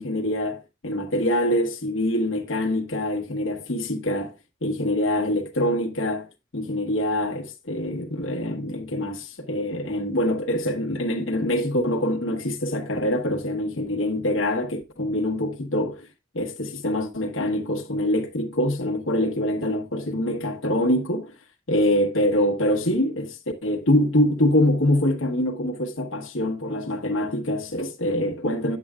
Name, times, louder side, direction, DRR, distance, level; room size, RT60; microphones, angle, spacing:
voice 1, 0.0-4.3 4.6-6.3 6.5-16.1 16.3-21.3 21.7-28.8, left 1 dB, 85° left, 1.3 m, -24 dB
9.4 x 7.7 x 2.3 m
head